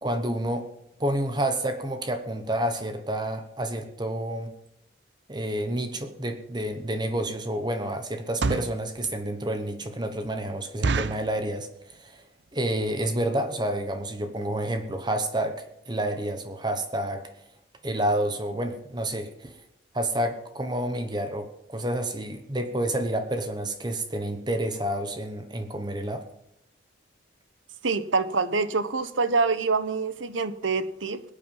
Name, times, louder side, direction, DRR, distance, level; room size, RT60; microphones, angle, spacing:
voice 1, 0.0-0.7 1.0-4.5 5.3-12.3 12.5-17.3 17.8-19.5 19.9-26.2, right 1 dB, 25° right, 7 dB, 1.0 m, -29 dB
sound 1, 6.6-6.7 7.2-7.5 8.2-8.8 9.4-9.5 9.8-9.9 10.2-10.3 10.8-11.3 11.9-12.2 12.5-12.6 12.8-13.1 13.6-13.7 13.9-14.1 14.5-14.6 14.8-14.9, right 3 dB, 65° right, 0.6 m, -28 dB
voice 2, 27.8-31.2, right 4 dB, 90° right, 14 dB, 1.0 m, -26 dB
22.0 x 8.6 x 5.5 m, 0.83 s
head